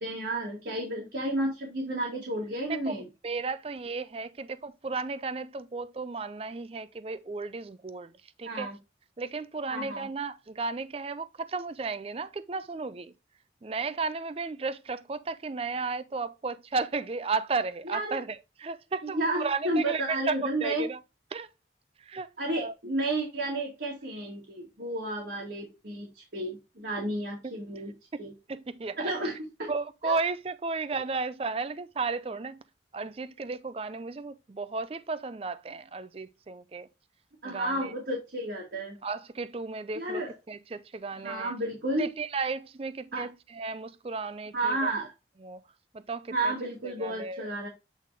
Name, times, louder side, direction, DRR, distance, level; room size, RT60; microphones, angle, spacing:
voice 1, 0.0-3.1 8.4-8.8 9.7-10.1 17.9-18.2 19.0-20.9 22.4-27.9 28.2-28.3 29.0-29.7 30.0-30.2 37.4-39.0 40.0-40.3 41.2-42.1 43.1-43.3 44.5-45.1 46.3-47.7, right 1 dB, 75° right, 2.0 m, -32 dB
voice 2, 2.7-8.1 8.4-8.7 9.2-13.1 13.6-21.0 21.3-21.5 22.0-22.3 22.6-22.7 27.4-27.5 28.1-29.1 29.7-32.6 32.9-36.9 37.4-37.9 39.0-41.5 42.0-44.9 45.4-45.6 45.9-46.5 46.8-47.4, right 4 dB, 35° right, 0.4 m, -34 dB
8.3 x 3.7 x 3.3 m
head